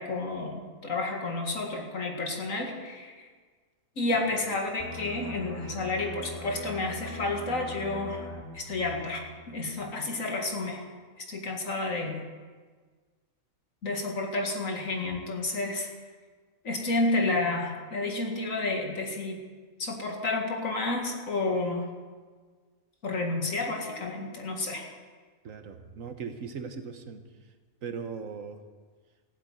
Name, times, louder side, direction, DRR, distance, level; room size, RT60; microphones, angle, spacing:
voice 1, 0.0-3.3 4.0-8.2 8.5-10.8 11.2-12.2 13.8-15.9 16.6-19.4 19.8-21.9 23.0-24.9, left 2 dB, 65° left, 1 dB, 2.4 m, -30 dB
sound 1, 4.8-10.2 10.5-10.8, left 1 dB, 10° left, 1.2 m, -42 dB
voice 2, 25.4-27.2 27.8-28.6, right 6 dB, 65° right, 8 dB, 1.4 m, -39 dB
15.0 x 8.6 x 9.0 m, 1.5 s
omnidirectional pair, 1.5 m